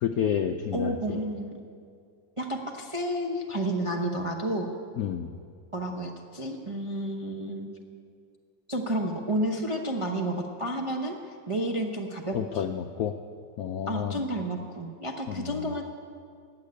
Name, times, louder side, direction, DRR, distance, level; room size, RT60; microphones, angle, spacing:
voice 1, 0.0-1.2 5.0-5.3 12.3-13.1 13.6-14.2 15.3-15.8, left 8 dB, 70° left, 6 dB, 0.8 m, -30 dB
voice 2, 0.7-1.6 2.4-4.7 5.7-7.7 8.7-11.2 11.5-12.6 13.9-15.8, right 1 dB, 30° right, 0 dB, 0.6 m, -31 dB
15.5 x 7.4 x 9.6 m, 2.3 s
omnidirectional pair, 2.1 m